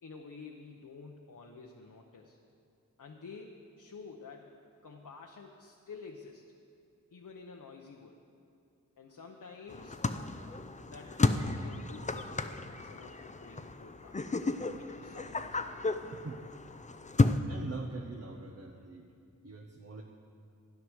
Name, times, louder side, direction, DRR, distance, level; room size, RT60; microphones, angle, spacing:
voice 1, 0.0-2.4 3.0-4.5 4.8-6.4 7.1-8.2 9.0-10.0 10.9-14.2 14.8-15.8, left 4 dB, 75° left, 1 dB, 0.9 m, -50 dB
sound 1, 9.7-17.4, left 3 dB, 25° left, 0.5 m, -33 dB
voice 2, 16.1-16.4 17.5-19.1 19.4-20.0, right 3 dB, 50° right, 2 dB, 0.9 m, -43 dB
12.5 x 9.5 x 6.3 m, 2.6 s
wide cardioid pair, 65°, 32 cm